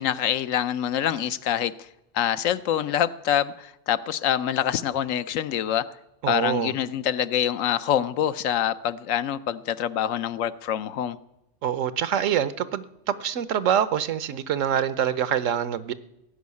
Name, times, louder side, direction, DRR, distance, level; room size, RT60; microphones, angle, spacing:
voice 1, 0.0-1.7 2.1-5.9 6.3-11.2, left 10 dB, 80° left, 14 dB, 1.0 m, -25 dB
voice 2, 6.2-6.7 11.6-15.9, right 9 dB, 80° right, 15 dB, 1.1 m, -25 dB
17.0 x 6.3 x 9.6 m, 0.86 s
omnidirectional pair, 1.3 m